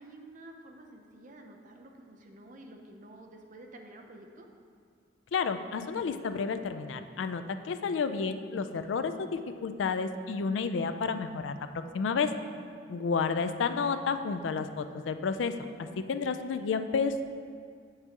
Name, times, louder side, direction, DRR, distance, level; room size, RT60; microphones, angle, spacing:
voice 1, 0.0-4.5 12.8-13.2, right 1 dB, 45° right, 3 dB, 0.6 m, -50 dB
voice 2, 5.3-12.3 12.9-17.2, left 5 dB, 75° left, 10 dB, 0.4 m, -31 dB
8.0 x 6.7 x 2.9 m, 2.2 s
head